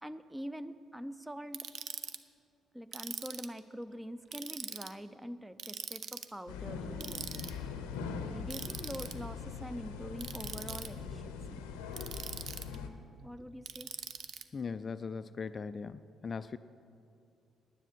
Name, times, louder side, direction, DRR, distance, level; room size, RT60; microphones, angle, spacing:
voice 1, 0.0-1.7 2.7-7.4 8.3-11.6 13.2-13.9, equal, 10° right, 12 dB, 0.6 m, -44 dB
Ratchet pawl, 1.5-2.2 2.9-3.6 4.3-4.9 5.6-6.3 7.0-7.5 8.5-9.1 10.2-10.9 11.9-12.8 13.7-14.4, right 7 dB, 55° right, 0.6 m, -42 dB
sound 1, 6.5-12.9, left 5 dB, 75° left, 0.7 m, -41 dB
voice 2, 14.5-16.6, left 5 dB, 40° left, 13 dB, 0.3 m, -39 dB
9.9 x 9.4 x 7.7 m, 2.5 s
figure-of-eight pair, 45°, 0 cm